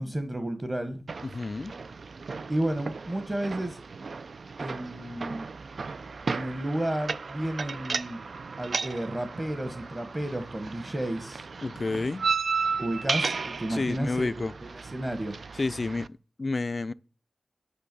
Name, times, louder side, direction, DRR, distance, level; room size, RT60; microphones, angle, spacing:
voice 1, 0.0-1.0 2.5-3.8 4.6-5.5 6.3-8.2 8.6-11.4 12.8-15.4, right 1 dB, 25° right, 1.1 m, -32 dB
sound 1, 1.1-16.1, right 4 dB, 60° right, 0.5 m, -35 dB
voice 2, 1.2-1.7 11.6-12.2 13.7-14.5 15.6-16.1 16.4-16.9, left 3 dB, 40° left, 0.4 m, -29 dB
10.0 x 5.6 x 6.7 m
wide cardioid pair, 90°, 0 cm